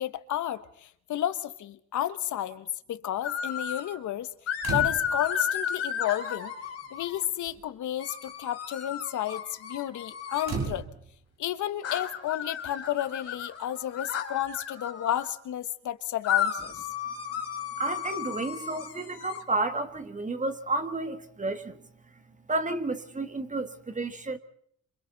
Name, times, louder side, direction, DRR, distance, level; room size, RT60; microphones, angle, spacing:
voice 1, 0.0-4.3 4.7-6.5 6.9-10.9 11.4-16.8, left 12 dB, 75° left, 1.3 m, -32 dB
sound 1, 3.2-3.9 4.5-7.2 8.0-10.6 11.8-15.3 16.2-19.4, left 8 dB, 55° left, 3.4 m, -33 dB
sound 2, 4.6-5.3 6.4-6.5 6.9-7.2 7.5-7.7 10.4-11.3 12.9-13.0, right 4 dB, 60° right, 4.7 m, -34 dB
voice 2, 17.8-21.9 22.5-24.4, right 2 dB, 25° right, 1.9 m, -31 dB
28.5 x 26.0 x 4.1 m
cardioid pair, 90°, 30 cm